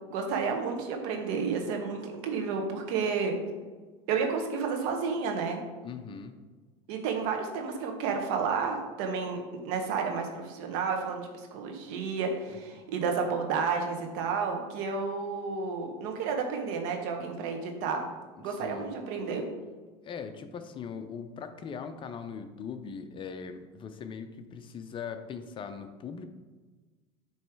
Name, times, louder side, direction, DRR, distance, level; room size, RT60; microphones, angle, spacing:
voice 1, 0.1-3.4 4.1-5.6 6.9-18.1 18.4-19.5, right 5 dB, 70° right, 3 dB, 1.2 m, -31 dB
voice 2, 5.8-6.4 12.8-12.9 18.4-19.0 20.0-26.3, left 6 dB, 35° left, 8 dB, 0.6 m, -40 dB
7.2 x 3.1 x 4.7 m, 1.3 s
supercardioid pair, 100°, 15 cm